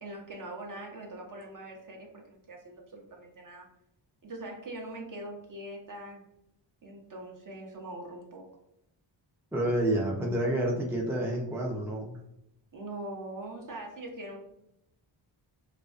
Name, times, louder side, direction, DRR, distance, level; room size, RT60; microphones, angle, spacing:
voice 1, 0.0-3.7 4.2-6.2 6.8-8.4 12.7-14.4, right 1 dB, 40° right, 1 dB, 0.7 m, -42 dB
voice 2, 9.5-12.2, right 1 dB, 5° right, -1 dB, 0.4 m, -29 dB
2.3 x 2.2 x 2.4 m, 0.81 s
cardioid pair, 70°, 48 cm